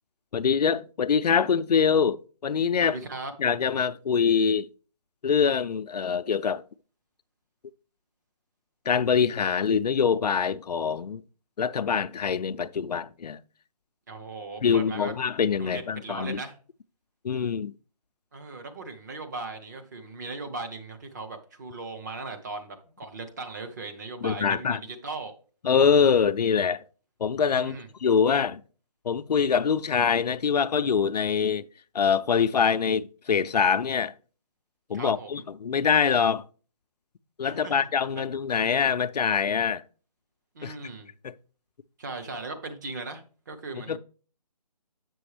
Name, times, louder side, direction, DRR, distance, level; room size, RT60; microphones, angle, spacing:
voice 1, 0.3-3.0 3.4-4.7 5.2-6.6 8.9-11.2 11.6-13.4 14.6-16.4 17.2-17.7 24.2-24.8 25.6-26.8 27.2-28.6 29.0-31.6 31.9-34.1 34.9-36.4 37.4-39.8 40.6-40.7 41.2-41.3 43.8-44.0, left 6 dB, 85° left, 0.5 m, -24 dB
voice 2, 2.8-3.3 14.1-15.1 15.6-16.6 18.3-25.3 27.5-27.9 34.9-35.4 37.5-38.2 40.5-41.1 42.0-44.0, right 3 dB, 30° right, 0.8 m, -38 dB
7.9 x 6.1 x 3.3 m
hypercardioid pair, 165°, 20 cm